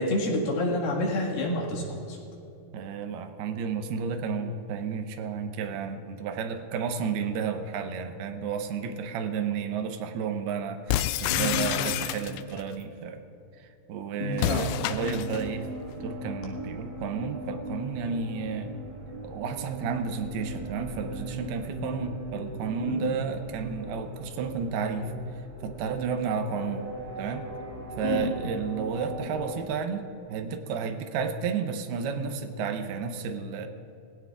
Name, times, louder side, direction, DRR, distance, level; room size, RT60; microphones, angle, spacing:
voice 1, 0.0-2.2 11.3-11.7 14.2-14.7 22.8-23.1 28.0-28.4, left 2 dB, 75° left, -3 dB, 3.6 m, -28 dB
voice 2, 2.7-13.2 13.6-15.7 16.0-18.8 19.2-25.1 25.6-26.9 27.2-27.5 28.0-33.7, right 6 dB, 85° right, 7 dB, 2.7 m, -32 dB
sound 1, 10.9-12.6 14.3-15.5, left 12 dB, 90° left, 2.0 m, -29 dB
sound 2, 14.3-29.7, right 1 dB, 35° right, 1.6 m, -39 dB
21.0 x 16.5 x 2.4 m, 2.8 s
omnidirectional pair, 4.5 m